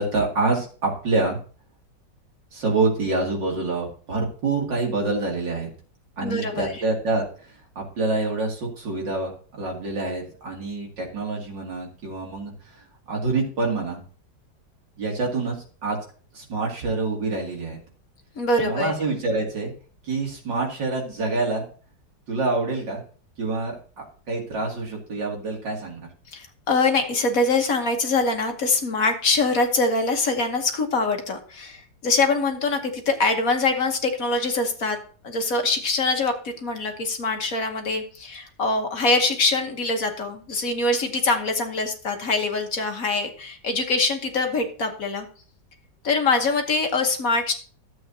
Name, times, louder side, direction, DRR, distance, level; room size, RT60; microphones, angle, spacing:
voice 1, 0.0-1.4 2.5-5.7 6.2-12.8 13.1-14.0 15.0-15.6 15.8-16.0 16.3-17.8 18.6-19.7 20.0-21.7 22.3-23.0 23.4-26.1, right 3 dB, 80° right, -1 dB, 3.0 m, -26 dB
voice 2, 6.2-6.8 18.4-18.9 26.3-35.0 35.2-45.2 46.0-47.5, left 3 dB, 55° left, 4 dB, 1.5 m, -24 dB
13.0 x 7.8 x 2.7 m, 0.41 s
omnidirectional pair, 1.9 m